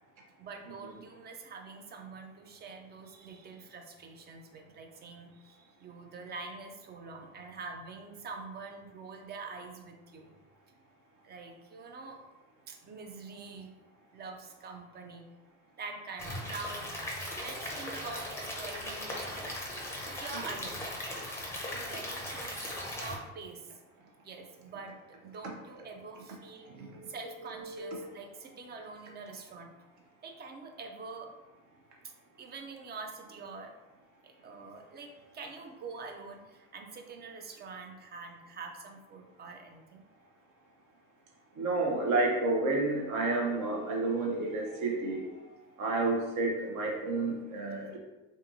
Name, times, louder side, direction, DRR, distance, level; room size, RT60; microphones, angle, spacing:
voice 1, 0.4-10.4 11.2-12.2 12.7-13.7 14.1-15.3 15.8-16.9 17.2-19.6 20.0-20.8 21.7-23.7 24.2-29.7 30.2-31.3 32.4-33.7 34.2-40.0, right 4 dB, 25° right, 3 dB, 0.4 m, -45 dB
Stream / Liquid, 16.2-23.2, left 1 dB, 5° left, 0.7 m, -38 dB
voice 2, 26.8-27.1 27.8-28.1 41.6-45.3 45.8-48.0, right 2 dB, 50° right, 0 dB, 0.8 m, -30 dB
2.6 x 2.5 x 2.6 m, 1.1 s
hypercardioid pair, 65°, 38 cm